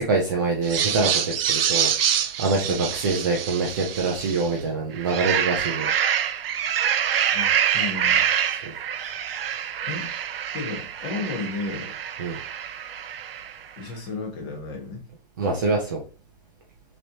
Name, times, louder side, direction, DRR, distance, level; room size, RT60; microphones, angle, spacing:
voice 1, 0.0-5.9 8.6-8.7 12.2-12.4 15.4-16.0, right 3 dB, 20° right, -1 dB, 0.5 m, -25 dB
sound 1, 0.6-4.5 4.9-13.6, right 9 dB, 70° right, 0.6 m, -26 dB
voice 2, 7.3-8.3 9.9-10.1 10.5-11.9 13.8-15.1, left 3 dB, 25° left, 1 dB, 1.0 m, -33 dB
6.3 x 3.0 x 2.8 m, 0.34 s
hypercardioid pair, 165°, 31 cm